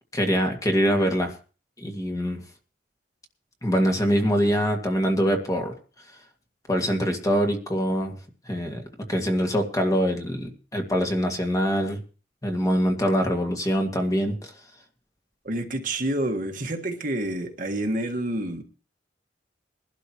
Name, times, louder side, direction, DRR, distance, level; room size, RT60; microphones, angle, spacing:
voice 1, 0.1-1.3 1.8-2.4 3.6-5.7 6.7-8.2 8.5-8.8 9.1-12.0 12.4-14.5, equal, 20° left, 3 dB, 2.0 m, -24 dB
voice 2, 15.4-18.6, right 1 dB, 50° right, 4 dB, 1.6 m, -28 dB
21.5 x 12.0 x 3.0 m, 0.36 s
head